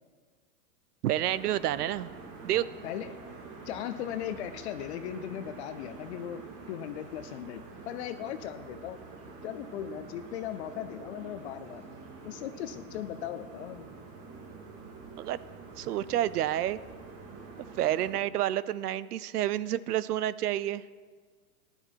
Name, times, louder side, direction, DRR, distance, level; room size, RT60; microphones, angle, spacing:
voice 1, 1.0-2.1 2.4-2.7 15.2-15.4 15.8-16.8 17.8-20.8, right 12 dB, 80° right, 18 dB, 0.7 m, -29 dB
sound 1, 1.2-18.1, right 4 dB, 30° right, 2.1 m, -47 dB
voice 2, 2.5-3.2 3.6-9.0 9.4-11.8 12.2-13.9, left 10 dB, 45° left, 10 dB, 0.7 m, -38 dB
15.0 x 11.0 x 4.6 m, 1.5 s
hypercardioid pair, 145°, 45 cm